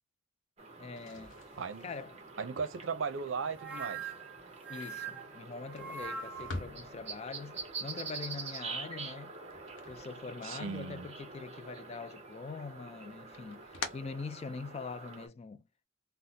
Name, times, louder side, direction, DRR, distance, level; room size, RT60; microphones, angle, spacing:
sound 1, 0.6-15.3, right 4 dB, 35° right, 0.8 m, -46 dB
voice 1, 0.8-1.4 1.8-2.2 4.7-9.4 9.9-15.6, left 4 dB, 30° left, 0.3 m, -43 dB
sound 2, 0.9-10.8 11.1-12.0 12.4-15.0, left 3 dB, 90° left, 0.8 m, -48 dB
voice 2, 1.6-1.9 2.4-4.1 10.4-11.1, right 5 dB, 80° right, 0.6 m, -37 dB
sound 3, 3.6-6.7, right 5 dB, 10° right, 0.9 m, -42 dB
3.9 x 2.0 x 2.7 m
head